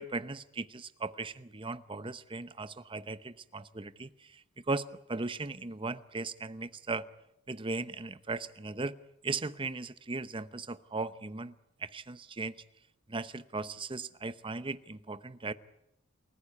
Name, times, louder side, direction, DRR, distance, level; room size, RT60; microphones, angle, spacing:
voice 1, 0.0-7.1 7.5-9.0 9.2-11.5 11.8-12.6 13.1-15.5, right 3 dB, 25° right, 13 dB, 0.8 m, -37 dB
28.5 x 15.0 x 9.6 m, 0.81 s
head